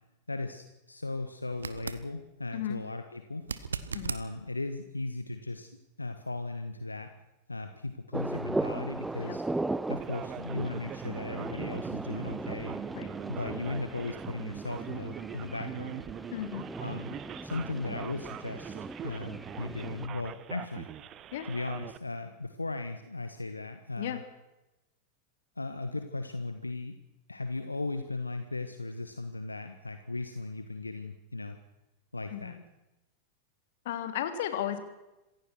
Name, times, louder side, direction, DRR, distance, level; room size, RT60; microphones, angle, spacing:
voice 1, 0.3-3.4 4.1-5.7 6.0-7.1 7.5-9.4 9.9-12.8 13.3-16.0 16.8-17.1 17.4-18.8 19.0-20.9 21.5-24.2 25.6-27.0 27.3-31.6 32.1-32.6, left 2 dB, 80° left, 8 dB, 1.4 m, -37 dB
sound 1, 1.5-2.1 3.4-4.3 7.3-7.4, right 5 dB, 70° right, 1.2 m, -37 dB
sound 2, 8.1-20.1, right 2 dB, 5° right, 0.7 m, -38 dB
Male speech man speaking, 10.0-22.0, right 11 dB, 30° right, 1.1 m, -43 dB
voice 2, 16.3-16.6 21.3-21.4 24.0-24.2 32.3-32.6 33.8-34.8, left 11 dB, 55° left, 8 dB, 2.9 m, -34 dB
26.5 x 16.0 x 6.2 m, 0.98 s
figure-of-eight pair, 90°, 0 cm